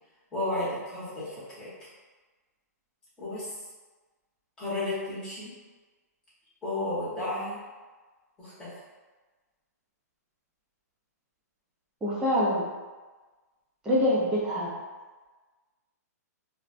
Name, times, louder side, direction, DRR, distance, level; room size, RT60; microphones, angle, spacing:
voice 1, 0.3-1.9 3.2-3.5 4.6-5.6 6.6-7.6 8.4-8.7, left 2 dB, 10° left, -11 dB, 0.9 m, -33 dB
voice 2, 12.0-12.6 13.8-14.7, left 1 dB, 10° right, -7 dB, 0.5 m, -25 dB
3.1 x 2.1 x 2.5 m, 1.3 s
hypercardioid pair, 160°, 9 cm